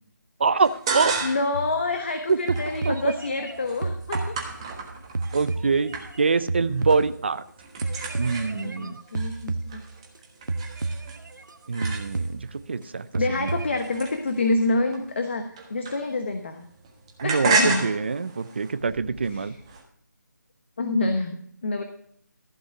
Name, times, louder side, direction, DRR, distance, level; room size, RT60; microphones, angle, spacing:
voice 1, 0.4-1.1 2.3-2.4 2.9-3.1 5.3-7.4 8.2-9.0 11.7-12.4 12.7-13.1 13.4-13.5 17.2-19.5, right 4 dB, 35° right, 13 dB, 0.5 m, -24 dB
sound 1, 0.6-1.6 2.0-5.5 5.9-6.4 6.7-7.2 7.4-12.5 13.1-16.4 16.6-19.8, right 4 dB, 15° right, 1.4 m, -32 dB
voice 2, 1.2-4.4 8.2-9.8 13.2-15.4 15.7-16.7 17.2-17.9 19.3-19.5 20.8-21.4 21.6-21.8, left 2 dB, 35° left, 6 dB, 1.1 m, -27 dB
sound 2, 1.5-2.2 2.5-4.8 5.1-7.5 7.8-10.2 10.5-11.6 11.8-12.8 13.1-13.9, right 3 dB, 80° right, 1.1 m, -32 dB
14.5 x 5.5 x 5.9 m, 0.64 s
figure-of-eight pair, 170°, 10 cm